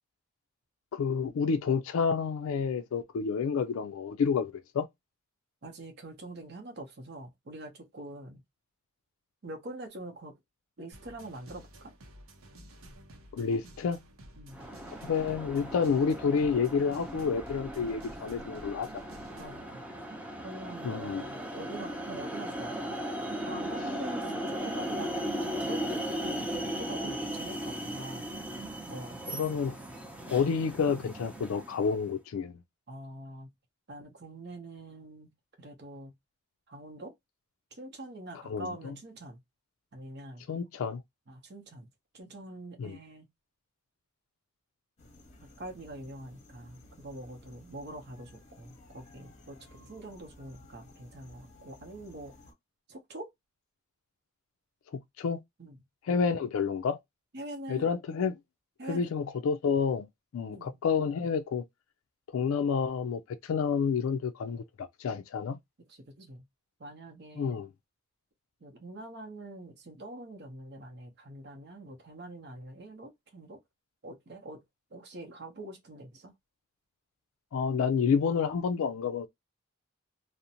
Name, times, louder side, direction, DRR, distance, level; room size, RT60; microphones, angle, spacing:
voice 1, 0.9-4.9 13.3-14.0 15.0-18.9 20.8-21.2 29.3-29.8 30.3-32.6 38.5-38.9 40.5-41.0 42.8-43.0 54.9-55.4 56.1-57.0 57.7-58.4 58.9-60.1 60.3-61.6 62.3-65.6 67.4-67.7 77.5-79.3, left 6 dB, 75° left, 0.3 m, -29 dB
voice 2, 5.6-8.4 9.4-10.3 10.8-11.9 14.4-14.6 19.3-19.8 20.4-22.8 23.4-26.5 26.8-28.3 28.9-29.2 32.9-33.5 33.9-35.3 35.6-36.1 36.7-37.1 37.7-39.4 39.9-40.4 41.3-41.9 42.1-43.3 45.4-52.5 52.9-53.3 55.6-55.8 57.3-57.9 58.8-59.1 60.5-60.8 65.9-66.4 66.8-67.5 68.6-73.6 74.0-74.6 74.9-76.3, right 1 dB, 50° right, 0.7 m, -44 dB
sound 1, 10.9-19.6, right 1 dB, 85° right, 0.6 m, -52 dB
sound 2, 14.5-32.0, equal, 5° right, 0.5 m, -37 dB
sound 3, 45.0-52.5, left 2 dB, 35° left, 0.7 m, -56 dB
2.5 x 2.0 x 2.7 m
head